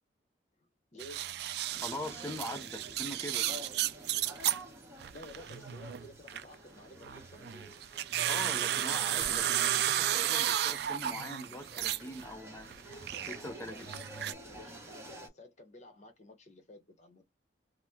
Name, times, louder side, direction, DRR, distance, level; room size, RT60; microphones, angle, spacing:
voice 1, 0.9-1.4 5.1-7.7 13.4-17.2, left 2 dB, 40° left, 0.9 m, -52 dB
sound 1, 1.0-4.6 5.0-6.5 7.0-12.3 12.5-14.3, right 12 dB, 60° right, 0.3 m, -33 dB
sound 2, 1.7-15.3, right 1 dB, 15° right, 1.0 m, -51 dB
voice 2, 1.8-3.5 8.3-12.7 13.1-13.9, left 1 dB, 15° left, 0.5 m, -42 dB
Gunshot gunfire, 9.1-11.1, left 3 dB, 85° left, 0.6 m, -52 dB
2.9 x 2.1 x 3.5 m
head